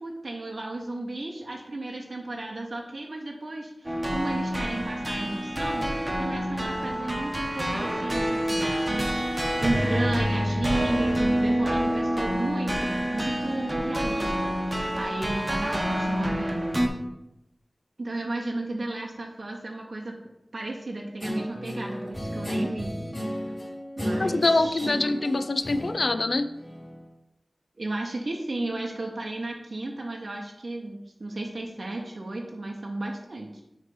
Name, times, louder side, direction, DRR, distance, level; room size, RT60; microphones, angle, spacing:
voice 1, 0.0-8.6 8.9-16.8 18.0-20.2 20.5-22.9 23.2-23.3 24.0-25.0 27.8-33.6, right 2 dB, 70° right, 0 dB, 0.7 m, -34 dB
sound 1, 3.8-16.9, equal, 20° right, 1.0 m, -27 dB
Guitar, 21.2-27.0, equal, 35° left, 2.4 m, -33 dB
voice 2, 24.2-26.5, left 2 dB, 70° left, 10 dB, 0.4 m, -24 dB
6.5 x 3.2 x 5.4 m, 0.88 s
wide cardioid pair, 50°, 0 cm